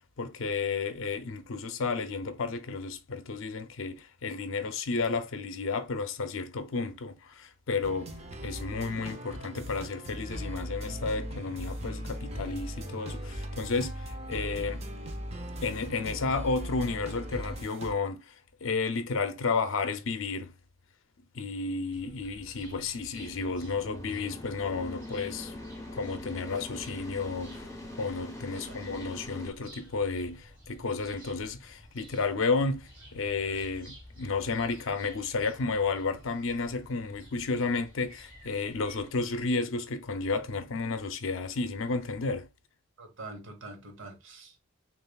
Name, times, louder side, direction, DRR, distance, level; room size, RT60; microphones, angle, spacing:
voice 1, 0.2-8.1 8.4-14.9 15.6-18.3 18.6-20.5 21.3-25.5 25.9-27.6 28.0-42.5, left 4 dB, 70° left, 0.5 m, -32 dB
sound 1, 7.8-17.9, equal, 30° right, 0.6 m, -39 dB
sound 2, 21.9-39.5, equal, 10° right, 2.1 m, -52 dB
sound 3, 23.1-29.5, left 1 dB, 15° left, 0.9 m, -43 dB
voice 2, 43.0-44.6, right 2 dB, 65° right, 1.1 m, -45 dB
6.6 x 2.4 x 2.3 m
head